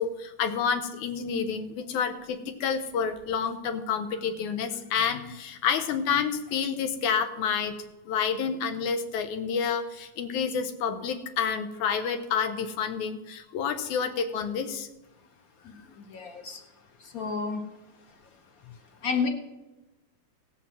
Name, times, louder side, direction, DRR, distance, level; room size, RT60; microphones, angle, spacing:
voice 1, 0.0-7.7 8.1-14.9, left 6 dB, 85° left, 7 dB, 2.4 m, -29 dB
voice 2, 15.6-16.6 17.0-17.7 19.0-19.3, left 5 dB, 50° left, 4 dB, 1.0 m, -31 dB
17.0 x 5.8 x 7.4 m, 1.0 s
omnidirectional pair, 3.4 m